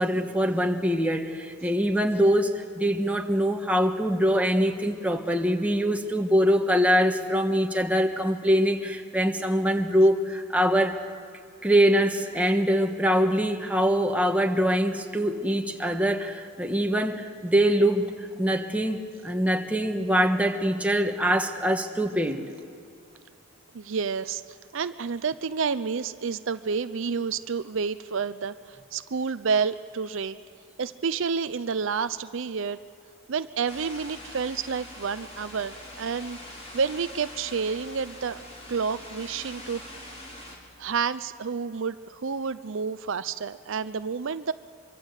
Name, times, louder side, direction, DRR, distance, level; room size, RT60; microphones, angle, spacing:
voice 1, 0.0-11.0 11.6-18.1 18.4-22.4, equal, 5° right, 3 dB, 1.4 m, -23 dB
voice 2, 23.7-30.4 30.8-32.8 33.3-36.4 36.7-39.9 40.8-44.5, right 5 dB, 65° right, 12 dB, 0.5 m, -29 dB
sound 1, 33.7-40.6, left 1 dB, 30° left, 3.8 m, -43 dB
24.5 x 24.0 x 8.1 m, 2.3 s
head